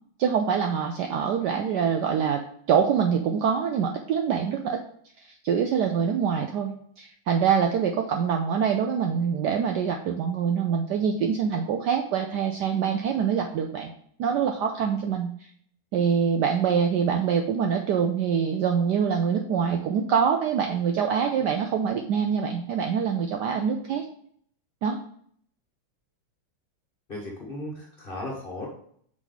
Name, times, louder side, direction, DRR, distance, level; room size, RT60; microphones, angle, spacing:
voice 1, 0.2-2.4 2.7-4.8 5.3-13.9 14.2-15.3 15.9-24.0 24.8-25.0, right 7 dB, 70° right, 4 dB, 1.0 m, -25 dB
voice 2, 27.1-28.7, left 1 dB, 30° left, -2 dB, 1.3 m, -36 dB
6.3 x 5.0 x 3.9 m, 0.62 s
omnidirectional pair, 2.3 m